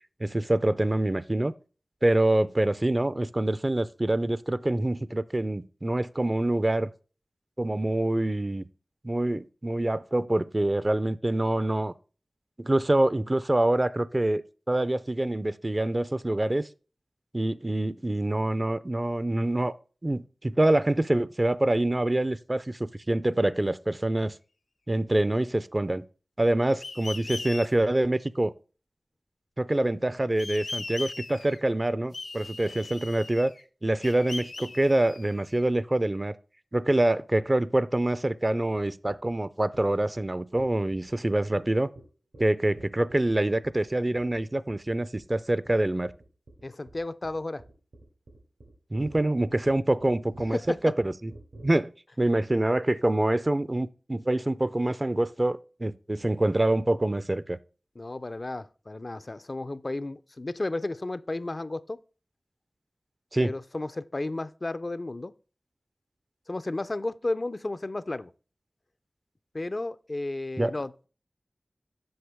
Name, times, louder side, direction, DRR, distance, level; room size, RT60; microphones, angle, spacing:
voice 1, 0.2-1.5 2.0-6.9 7.6-8.7 9.0-11.9 12.6-14.4 14.7-16.7 17.3-19.7 20.0-24.3 24.9-26.1 26.4-28.5 29.6-33.5 33.8-36.4 36.7-41.9 42.4-46.1 48.9-50.6 50.8-51.3 51.6-57.6 63.3-63.5 70.6-70.7, right 1 dB, 35° right, 0.4 m, -26 dB
sound 1, 26.8-27.7 30.4-31.6 32.1-33.6 34.0-35.6, left 3 dB, 75° left, 0.7 m, -39 dB
sound 2, 39.7-39.8 40.2-40.3 40.5-41.1 41.5-41.6 42.0-42.1 42.3-42.4 42.8-43.3 43.6-43.9 44.2-44.4 44.7-44.9 45.2-45.4 45.6-51.7, right 2 dB, 75° right, 3.5 m, -47 dB
voice 2, 46.6-47.6 50.5-50.9 58.0-62.0 63.4-65.3 66.5-68.3 69.5-71.1, left 2 dB, 50° left, 0.3 m, -33 dB
7.8 x 6.1 x 3.4 m
cardioid pair, 40°, 0 cm